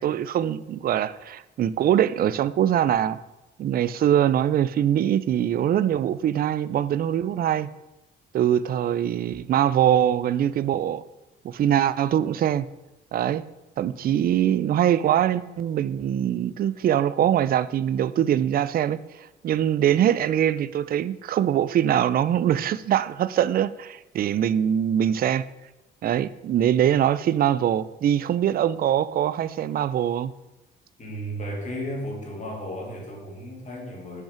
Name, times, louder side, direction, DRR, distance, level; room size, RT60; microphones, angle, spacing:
voice 1, 0.0-3.2 3.6-7.7 8.3-11.0 11.4-12.7 13.1-13.4 13.8-19.0 19.4-25.5 26.0-30.3, right 10 dB, 50° right, 0.4 m, -23 dB
voice 2, 31.0-34.2, equal, 40° left, 2.2 m, -34 dB
5.9 x 5.3 x 5.0 m
cardioid pair, 90°, 20 cm